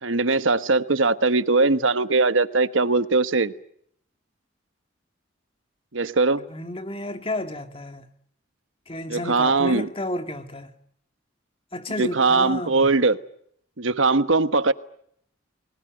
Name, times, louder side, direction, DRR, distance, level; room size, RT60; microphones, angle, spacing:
voice 1, 0.0-3.5 5.9-6.4 9.1-9.9 12.0-13.2 13.8-14.7, right 3 dB, 85° right, 1.2 m, -20 dB
voice 2, 6.5-8.1 8.9-10.7 11.7-12.9, left 1 dB, 30° left, 2.1 m, -31 dB
29.5 x 20.5 x 9.1 m
head